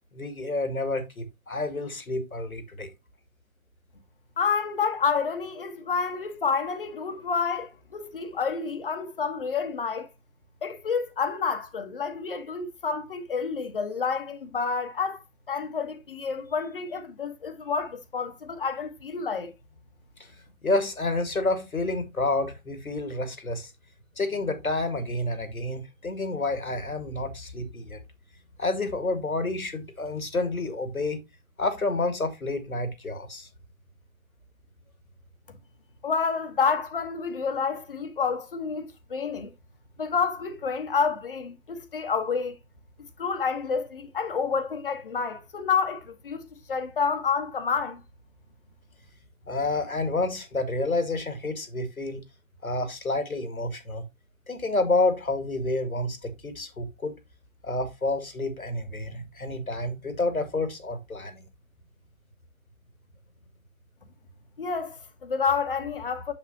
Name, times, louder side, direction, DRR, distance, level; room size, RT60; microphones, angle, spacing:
voice 1, 0.1-2.9 20.6-23.7 24.2-28.0 28.6-31.2 31.6-33.5 49.5-52.2 52.6-54.0 54.5-57.2 57.6-61.4, left 2 dB, 80° left, 2.0 m, -29 dB
voice 2, 4.4-10.1 10.6-19.5 36.0-39.5 40.0-42.6 43.2-48.0 64.6-66.3, left 5 dB, 40° left, 1.2 m, -29 dB
7.3 x 7.1 x 2.8 m
figure-of-eight pair, 140°, 42 cm